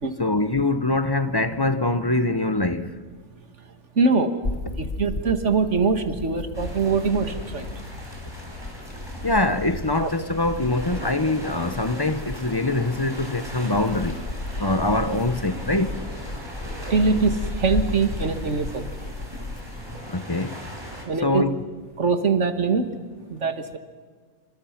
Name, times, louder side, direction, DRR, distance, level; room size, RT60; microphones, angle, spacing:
voice 1, 0.2-3.0 9.2-14.2 14.6-16.0 20.1-20.6 21.2-21.6, left 2 dB, 20° left, 0.9 m, -24 dB
voice 2, 4.0-4.3 4.8-7.7 10.0-10.1 16.9-18.8 21.1-21.4 22.0-22.8 23.3-23.8, right 4 dB, 65° right, 2.1 m, -23 dB
sound 1, 4.4-20.0, left 2 dB, 40° left, 1.7 m, -34 dB
sound 2, 6.5-21.0, equal, 20° right, 5.5 m, -39 dB
28.5 x 26.0 x 5.9 m
omnidirectional pair, 1.3 m